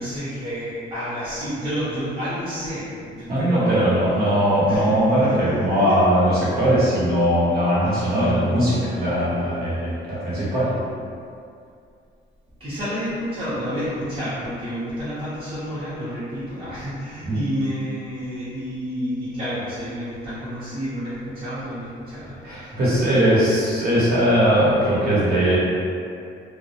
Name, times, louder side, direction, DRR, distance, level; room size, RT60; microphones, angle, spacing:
voice 1, 0.0-4.0 4.7-6.0 7.8-8.3 12.6-22.8, equal, 30° right, -13 dB, 0.8 m, -30 dB
voice 2, 3.3-10.8 17.2-17.4 22.4-25.6, equal, 55° right, -9 dB, 1.0 m, -20 dB
2.2 x 2.0 x 2.8 m, 2.4 s
cardioid pair, 90°, 20 cm